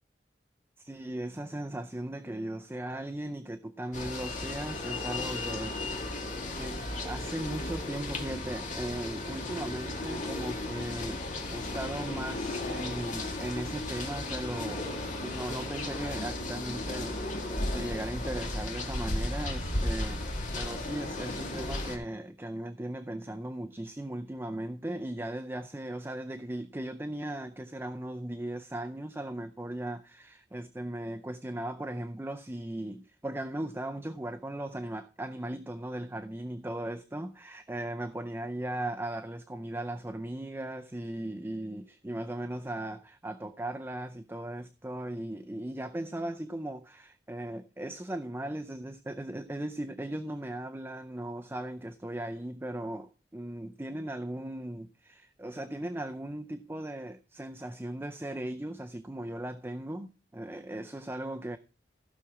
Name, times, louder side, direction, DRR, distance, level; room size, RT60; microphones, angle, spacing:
voice 1, 0.8-6.2 6.6-11.2 11.5-61.6, right 1 dB, 15° right, 0.5 m, -38 dB
sound 1, 3.9-22.0, left 2 dB, 45° left, 2.0 m, -35 dB
15.5 x 6.1 x 4.8 m
head